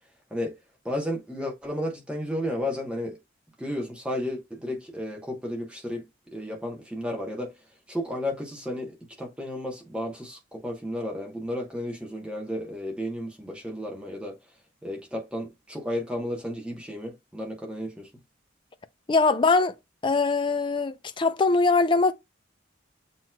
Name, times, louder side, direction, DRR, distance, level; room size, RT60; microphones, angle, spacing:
voice 1, 0.8-3.2 3.6-6.1 6.3-7.5 7.9-14.4 14.8-18.1, left 1 dB, 5° right, 1.0 m, -33 dB
voice 2, 19.1-19.7 20.0-22.1, left 3 dB, 25° left, 0.4 m, -22 dB
7.7 x 3.0 x 2.2 m
head